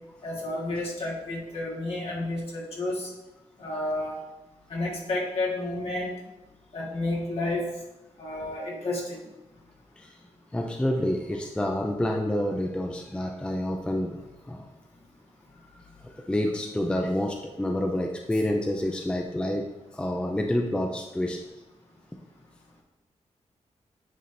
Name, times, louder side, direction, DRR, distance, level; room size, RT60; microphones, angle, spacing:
voice 1, 0.2-3.1 3.6-4.2 4.7-6.1 6.7-7.7 8.2-9.2, left 2 dB, 60° left, -3 dB, 1.7 m, -31 dB
voice 2, 10.5-14.2 14.5-14.6 15.7-19.7 19.9-21.4, left 1 dB, 10° left, 2 dB, 0.4 m, -28 dB
9.3 x 4.2 x 2.7 m, 0.99 s
wide cardioid pair, 150°, 12 cm